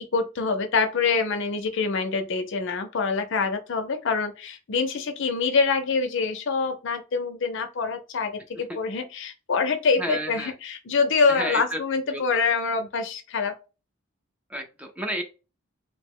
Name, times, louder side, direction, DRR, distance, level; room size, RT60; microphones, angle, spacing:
voice 1, 0.0-13.5, left 4 dB, 60° left, 0.5 m, -25 dB
voice 2, 10.0-10.5 11.3-11.8 12.1-12.2 14.5-15.2, right 1 dB, 5° right, 0.4 m, -31 dB
2.9 x 2.0 x 3.5 m
head